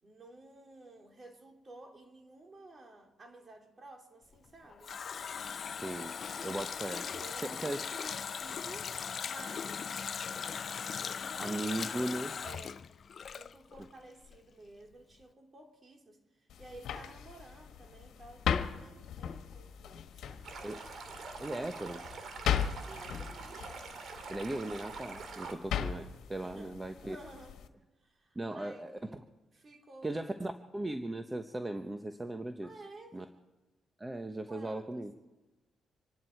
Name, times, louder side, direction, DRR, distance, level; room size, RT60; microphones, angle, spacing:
voice 1, 0.0-5.0 7.1-10.2 11.0-12.9 13.3-20.5 22.9-23.6 25.1-25.6 26.4-27.6 28.0-29.1 29.5-30.1 32.6-33.3 34.5-35.0, right 2 dB, 40° right, 3.4 m, -53 dB
Water tap faucet, 4.4-14.0 14.2-14.4, left 6 dB, 55° left, 0.5 m, -39 dB
voice 2, 5.8-6.1 6.4-7.1 7.4-7.8 11.4-12.3 20.6-20.9 21.4-22.0 24.3-27.2 28.3-29.2 30.0-32.7 33.1-33.2 34.0-35.1, right 1 dB, 20° right, 1.1 m, -38 dB
sound 1, 16.5-27.7, left 8 dB, 80° left, 1.4 m, -38 dB
Stream, 20.4-25.5, right 4 dB, 65° right, 2.4 m, -45 dB
26.5 x 11.0 x 4.7 m
cardioid pair, 70°, 0 cm